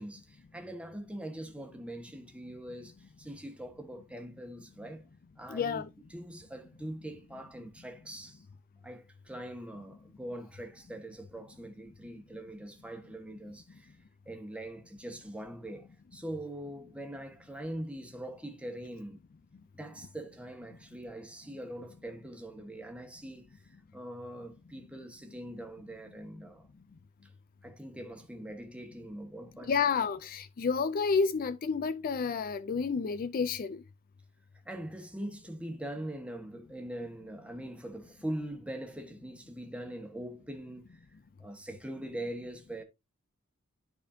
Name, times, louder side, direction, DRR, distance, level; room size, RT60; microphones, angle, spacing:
voice 1, 0.0-5.1 5.4-5.8 6.1-8.4 8.8-14.0 14.2-19.2 19.7-26.7 27.2-27.3 27.6-29.7 34.6-42.8, right 1 dB, 5° right, 1.3 m, -42 dB
voice 2, 5.5-5.9 29.7-33.8, left 5 dB, 40° left, 0.4 m, -30 dB
12.5 x 4.2 x 2.7 m
head